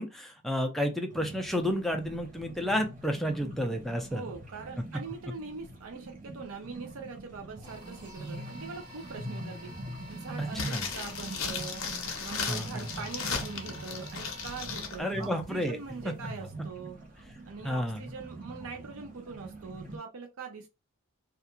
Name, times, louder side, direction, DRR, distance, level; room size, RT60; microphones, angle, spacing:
voice 1, 0.0-4.2 10.4-10.9 12.5-12.9 15.0-15.8 16.0-16.1 17.6-18.0, equal, ahead, 0.4 m, -31 dB
sound 1, 1.1-20.0, right 1 dB, 35° right, 0.8 m, -44 dB
voice 2, 4.1-9.7 10.1-11.8 12.2-17.0 17.5-20.7, right 4 dB, 65° right, 0.5 m, -42 dB
sound 2, 7.6-15.0, equal, 20° right, 1.1 m, -50 dB
sound 3, 10.5-15.0 15.2-15.3, left 6 dB, 60° left, 0.6 m, -36 dB
2.4 x 2.3 x 2.9 m
head